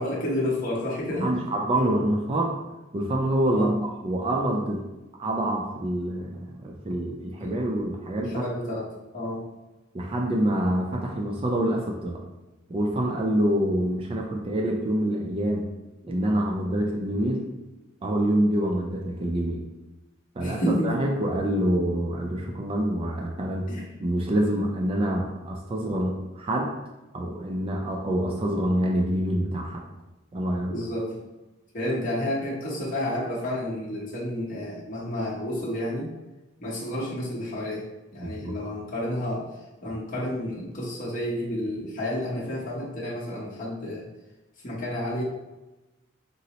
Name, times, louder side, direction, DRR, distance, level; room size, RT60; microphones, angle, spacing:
voice 1, 0.0-1.3 3.5-3.7 7.4-7.6 8.3-8.9 9.1-9.4 20.4-20.9 23.7-23.9 30.7-31.2 31.7-36.1 36.6-37.8 38.1-39.5 39.8-44.1 44.6-45.2, left 1 dB, 45° left, -6 dB, 0.8 m, -30 dB
voice 2, 1.1-2.6 2.9-4.8 5.2-8.5 9.9-12.2 12.7-15.7 16.0-17.5 18.0-19.6 20.4-23.7 24.0-26.7 27.1-29.8 30.3-30.7 38.2-38.5, right 1 dB, 30° right, 0 dB, 0.3 m, -26 dB
3.9 x 2.0 x 2.8 m, 1.1 s
head